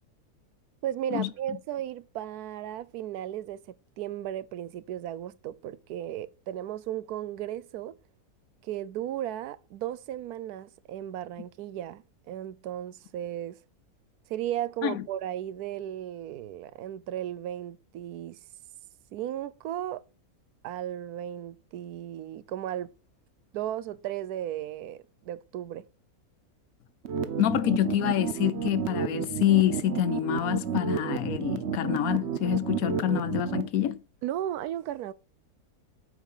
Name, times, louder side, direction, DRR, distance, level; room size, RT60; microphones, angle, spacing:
voice 1, 0.8-8.0 8.6-13.6 14.3-18.4 19.1-20.0 20.6-22.9 23.5-25.9 34.2-35.1, right 11 dB, 90° right, 1.1 m, -35 dB
sound 1, 27.0-33.7, right 7 dB, 55° right, 1.0 m, -31 dB
voice 2, 27.4-34.0, left 11 dB, 70° left, 1.1 m, -26 dB
8.3 x 5.0 x 5.5 m
omnidirectional pair, 1.6 m